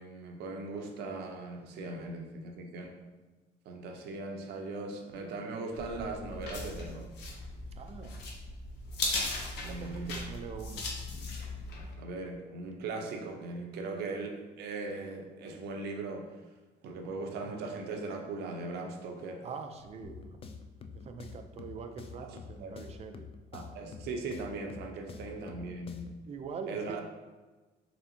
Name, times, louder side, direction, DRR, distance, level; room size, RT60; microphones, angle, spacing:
voice 1, 0.0-3.0 3.7-7.1 9.6-10.2 12.0-16.3 16.8-19.4 22.2-22.7 23.5-26.1 26.7-27.0, right 3 dB, 75° right, 2 dB, 0.7 m, -39 dB
sound 1, 5.7-11.9, left 2 dB, 80° left, 0.8 m, -38 dB
voice 2, 7.7-8.2 9.6-10.8 19.4-20.4 20.9-23.3 26.3-27.0, right 5 dB, 40° right, 6 dB, 0.4 m, -43 dB
sound 2, 20.0-26.3, left 5 dB, 35° left, 0.3 m, -48 dB
4.3 x 3.4 x 2.7 m, 1.2 s
cardioid pair, 110°, 17 cm